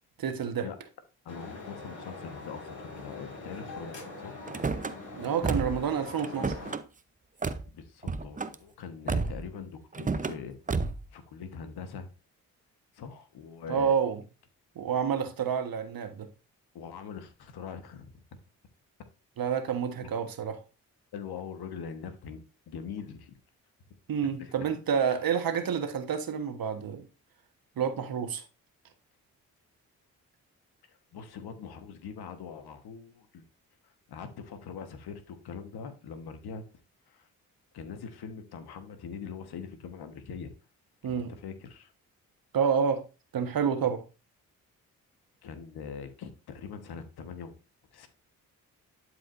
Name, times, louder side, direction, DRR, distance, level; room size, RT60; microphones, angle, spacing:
voice 1, 0.2-0.7 5.1-6.5 13.7-14.2 14.7-16.3 19.4-20.6 24.1-27.0 27.8-28.4 41.0-41.3 42.5-43.0 43.3-44.0, right 7 dB, 60° right, 1.4 m, -29 dB
voice 2, 1.2-4.4 7.6-10.5 11.1-12.1 12.9-14.0 16.7-18.1 21.1-23.3 24.2-24.5 25.0-25.2 31.1-33.4 34.1-36.6 37.1-37.3 37.7-40.5 41.0-41.9 45.4-47.5 47.9-48.1, left 6 dB, 70° left, 1.4 m, -42 dB
sound 1, 1.3-6.8, left 3 dB, 50° left, 4.6 m, -43 dB
Car / Slam, 4.5-4.9 5.4-5.9 6.2-6.8 7.4-7.6 8.0-8.6 9.1-9.5 9.9-10.4 10.7-11.1, right 4 dB, 20° right, 0.7 m, -31 dB
11.5 x 4.8 x 2.6 m
hypercardioid pair, 45°, 40 cm